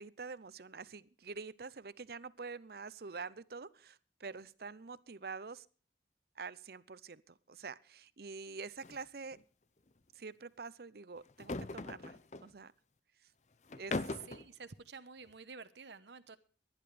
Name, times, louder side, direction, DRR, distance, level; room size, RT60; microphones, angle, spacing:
voice 1, 0.0-5.7 6.4-9.4 10.1-12.7 13.7-14.2, right 4 dB, 60° right, 0.6 m, -46 dB
sound 1, 8.8-9.0 9.3-9.4 11.3-12.5 13.7-14.5, left 3 dB, 40° left, 0.7 m, -40 dB
voice 2, 14.3-16.4, right 4 dB, 75° right, 1.0 m, -51 dB
23.0 x 10.5 x 3.3 m
head